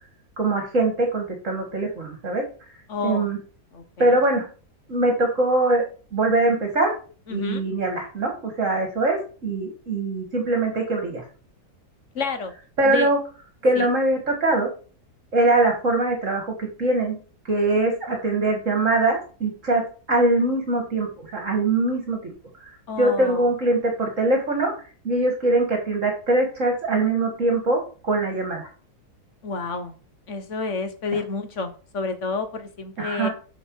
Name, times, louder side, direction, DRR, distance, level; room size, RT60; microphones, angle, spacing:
voice 1, 0.4-2.4 3.0-3.4 4.0-4.5 4.9-5.8 6.1-6.9 7.3-11.2 12.8-13.2 13.6-14.7 15.3-16.5 16.8-17.2 17.5-19.8 20.1-22.3 22.6-22.7 23.0-24.7 25.0-28.7 33.0-33.3, right 2 dB, 50° right, 2 dB, 2.1 m, -22 dB
voice 2, 2.9-3.3 3.7-4.2 7.3-7.6 12.1-12.5 12.8-13.1 13.7-13.9 22.9-23.5 29.4-29.9 30.3-33.3, left 4 dB, 50° left, 8 dB, 1.5 m, -29 dB
8.0 x 6.2 x 4.6 m, 0.38 s
omnidirectional pair, 1.7 m